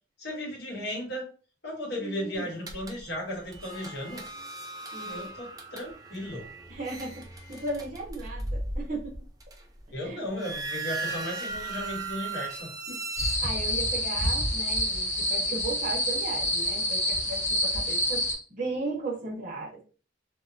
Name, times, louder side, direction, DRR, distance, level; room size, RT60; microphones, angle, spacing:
voice 1, 0.2-1.3 1.6-4.2 5.0-6.5 9.9-12.7, left 1 dB, 60° left, -1 dB, 1.0 m, -35 dB
voice 2, 2.0-2.7 4.9-5.3 6.7-9.2 10.0-10.2 12.9-18.2 18.5-19.8, right 3 dB, 45° right, -1 dB, 0.9 m, -36 dB
sound 1, 2.7-3.0 3.5-9.8 10.2-13.3, right 2 dB, 20° right, 0.4 m, -37 dB
sound 2, 13.2-18.4, equal, 40° left, 0.8 m, -27 dB
2.7 x 2.1 x 2.4 m, 0.37 s
head